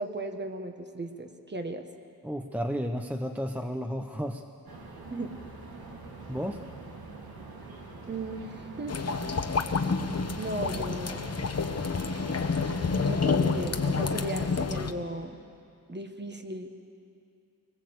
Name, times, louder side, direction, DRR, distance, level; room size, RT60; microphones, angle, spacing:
voice 1, 0.0-1.8 5.1-5.4 8.1-9.0 10.4-11.3 13.0-15.4 15.9-16.8, right 2 dB, 30° right, 6 dB, 1.4 m, -36 dB
voice 2, 2.2-4.4 6.3-6.6, equal, 5° right, 5 dB, 0.8 m, -32 dB
sound 1, 4.7-14.5, right 3 dB, 70° right, 2.7 m, -44 dB
sound 2, 8.9-14.9, left 4 dB, 40° left, 1.0 m, -29 dB
23.0 x 20.0 x 8.0 m, 2.4 s
wide cardioid pair, 145°, 38 cm